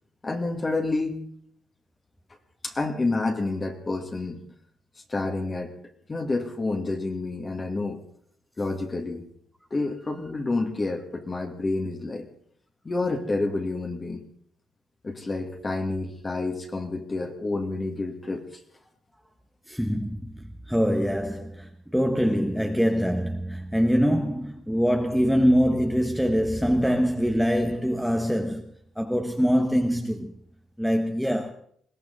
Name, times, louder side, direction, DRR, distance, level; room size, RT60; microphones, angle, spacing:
voice 1, 0.2-1.2 2.6-4.4 5.1-5.8 6.1-8.0 8.6-9.2 9.7-12.3 12.8-14.2 15.0-18.5, left 2 dB, 30° left, 2.3 m, -29 dB
voice 2, 19.7-30.3 30.8-31.5, equal, ahead, 1.3 m, -24 dB
21.5 x 17.0 x 4.0 m
cardioid pair, 90°, 0 cm